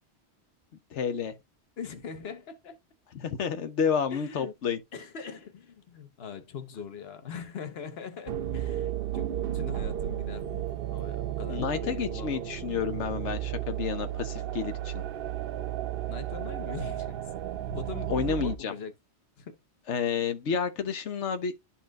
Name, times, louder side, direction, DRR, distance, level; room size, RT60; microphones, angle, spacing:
voice 1, 0.9-1.3 3.1-4.8 11.5-15.0 18.1-18.8 19.9-21.5, left 6 dB, 90° left, 1.2 m, -30 dB
voice 2, 1.8-2.8 4.1-4.5 4.9-10.6 10.9-12.4 16.1-17.2 17.7-18.9 19.4-19.6, left 6 dB, 65° left, 1.3 m, -41 dB
sound 1, 8.3-18.6, right 12 dB, 60° right, 0.7 m, -33 dB
12.0 x 4.3 x 2.4 m
omnidirectional pair, 1.1 m